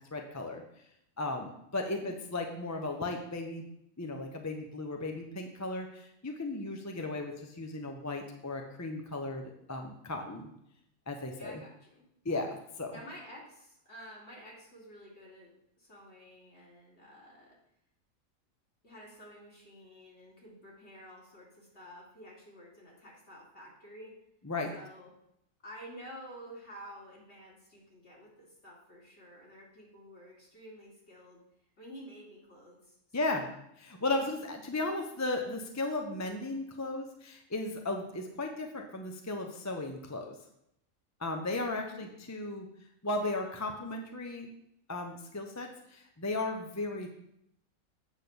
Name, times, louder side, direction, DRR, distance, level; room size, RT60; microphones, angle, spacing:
voice 1, 0.1-0.6 1.2-3.6 4.0-10.5 11.1-11.6 12.2-12.9 24.4-24.7 33.1-33.5 33.8-40.4 41.2-42.7 43.0-44.5 44.9-47.1, left 2 dB, 15° left, 3 dB, 0.6 m, -35 dB
voice 2, 11.3-12.1 12.9-17.6 18.8-24.1 24.7-25.1 25.6-31.4 31.8-33.5 41.9-42.1, equal, 50° left, -4 dB, 2.8 m, -51 dB
8.2 x 4.4 x 6.8 m, 0.78 s
omnidirectional pair, 1.5 m